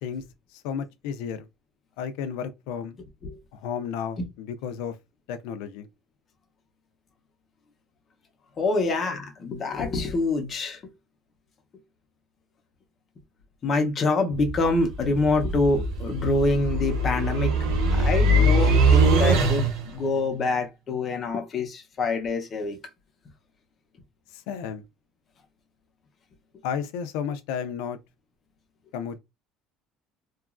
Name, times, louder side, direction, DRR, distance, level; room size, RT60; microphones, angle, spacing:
voice 1, 0.5-1.5 2.0-2.9 3.5-4.9 5.3-5.9 24.3-24.8 26.6-28.0 28.9-29.2, left 7 dB, 80° left, 0.4 m, -32 dB
voice 2, 8.6-10.8 13.6-17.6 17.9-22.8, left 3 dB, 25° left, 0.6 m, -26 dB
sound 1, 14.3-20.0, right 2 dB, 85° right, 0.8 m, -22 dB
2.9 x 2.3 x 2.4 m
cardioid pair, 165°, 0 cm